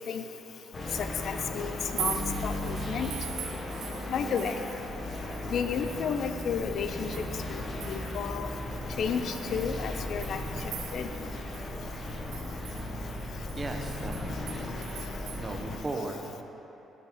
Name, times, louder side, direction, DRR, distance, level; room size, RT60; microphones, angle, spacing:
sound 1, 0.7-15.8, left 1 dB, 25° left, 0.7 m, -36 dB
voice 1, 1.0-3.1 4.1-4.5 5.5-7.1 7.5-7.6 7.9-8.5 9.0-10.4 10.9-11.1, left 7 dB, 50° left, 8 dB, 0.3 m, -32 dB
sound 2, 1.8-4.9 5.1-8.3 8.8-8.9 9.3-11.3 11.5-11.6 12.0-15.4, right 9 dB, 80° right, 0.5 m, -42 dB
voice 2, 13.5-14.7 15.3-16.4, right 2 dB, 20° right, 3 dB, 0.5 m, -37 dB
7.1 x 5.7 x 3.4 m, 2.9 s
cardioid pair, 155°, 0 cm